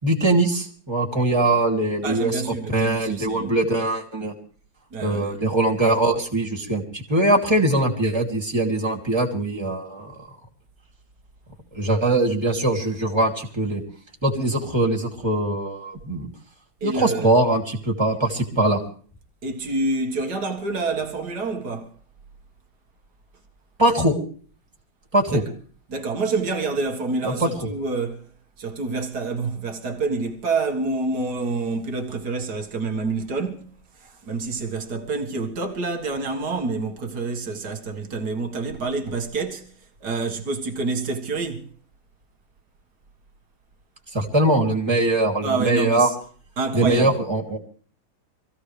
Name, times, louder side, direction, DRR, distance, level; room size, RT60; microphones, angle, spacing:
voice 1, 0.0-4.3 5.0-10.1 11.7-13.8 14.2-16.3 16.8-18.8 23.8-24.1 25.1-25.4 27.2-27.5 44.1-46.1 46.7-47.6, right 2 dB, 10° right, 2.6 m, -22 dB
voice 2, 2.0-3.6 4.9-5.4 16.8-17.3 19.4-21.9 25.3-25.5 25.9-28.3 28.6-39.7 40.0-41.7 45.4-46.2 46.6-47.2, right 3 dB, 50° right, 2.1 m, -27 dB
25.0 x 16.0 x 3.3 m
omnidirectional pair, 2.4 m